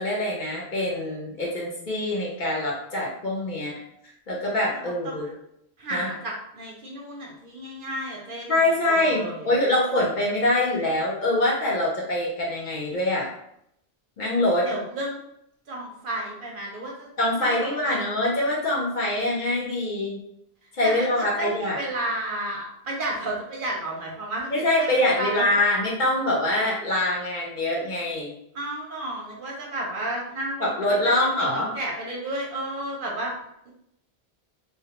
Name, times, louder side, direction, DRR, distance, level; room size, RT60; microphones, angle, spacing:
voice 1, 0.0-3.8 4.3-5.3 5.9-6.1 8.5-13.3 14.2-14.7 17.2-20.2 20.7-21.8 24.5-28.3 30.6-31.7, left 1 dB, 55° left, -4 dB, 0.7 m, -24 dB
voice 2, 4.7-5.3 5.8-8.6 8.9-9.5 14.6-15.2 15.7-17.1 17.4-18.0 20.8-25.6 28.5-30.7 31.0-33.3, right 1 dB, 60° right, -2 dB, 0.7 m, -32 dB
2.2 x 2.1 x 2.8 m, 0.77 s
omnidirectional pair, 1.1 m